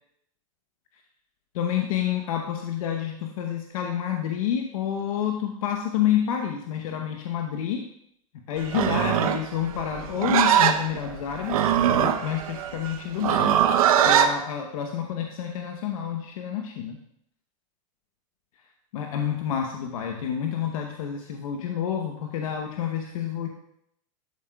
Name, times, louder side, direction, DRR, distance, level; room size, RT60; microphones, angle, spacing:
voice 1, 1.5-7.8 8.5-13.5 14.1-17.0 18.9-23.5, left 9 dB, 75° left, 3 dB, 0.9 m, -28 dB
Livestock farm animals working animals, 8.6-14.3, right 9 dB, 80° right, 0.8 m, -21 dB
12.5 x 7.4 x 2.3 m, 0.74 s
supercardioid pair, 140°, 18 cm